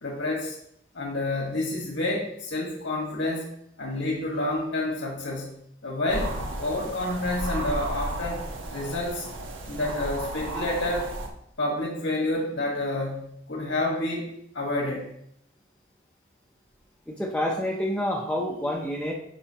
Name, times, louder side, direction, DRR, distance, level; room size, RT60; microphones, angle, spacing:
voice 1, 0.0-0.6 0.9-3.5 3.8-9.3 9.7-11.1 11.6-14.3 14.5-15.0, left 2 dB, 80° left, -1 dB, 1.6 m, -29 dB
sound 1, 6.1-11.3, right 1 dB, 85° right, 1.2 m, -34 dB
voice 2, 17.1-19.1, left 1 dB, 5° left, -2 dB, 0.6 m, -28 dB
9.0 x 5.7 x 2.9 m, 0.74 s
head